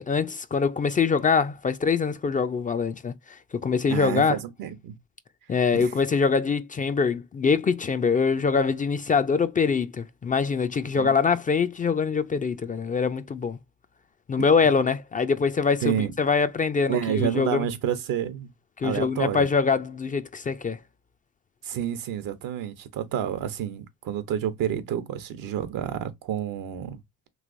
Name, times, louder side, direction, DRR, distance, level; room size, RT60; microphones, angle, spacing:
voice 1, 0.0-4.4 5.5-13.6 14.3-17.7 18.8-20.8, left 5 dB, 25° left, 0.3 m, -24 dB
voice 2, 3.9-5.0 5.7-5.9 11.0-11.1 15.8-16.1 16.9-18.5 18.8-19.5 21.6-27.0, right 9 dB, 75° right, 0.7 m, -29 dB
3.1 x 2.9 x 2.4 m
supercardioid pair, 60°, 33 cm